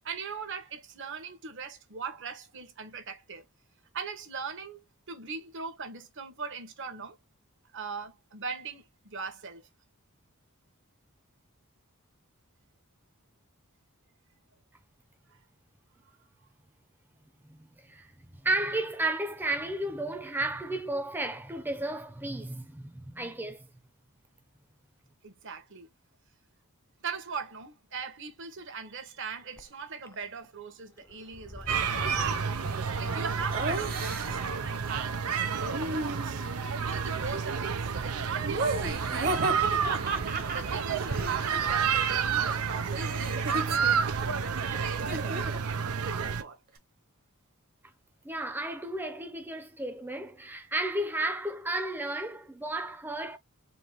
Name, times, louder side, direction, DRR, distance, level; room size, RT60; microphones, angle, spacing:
voice 1, 0.0-3.4 3.9-7.2 7.7-9.7 25.2-25.9 27.0-32.6 33.0-36.4 36.9-40.0 40.5-46.6, right 5 dB, 60° right, 1.2 m, -40 dB
voice 2, 17.4-23.7 48.2-53.4, right 2 dB, 10° right, 0.8 m, -33 dB
sound 1, 29.6-29.7 30.1-30.6 30.9-34.9, left 2 dB, 15° left, 0.3 m, -46 dB
sound 2, 31.7-46.4, right 6 dB, 85° right, 0.7 m, -30 dB
Laughter, 33.5-34.5 35.6-36.6 38.4-42.3 42.6-45.7, right 2 dB, 40° right, 1.1 m, -34 dB
4.4 x 2.5 x 3.1 m
head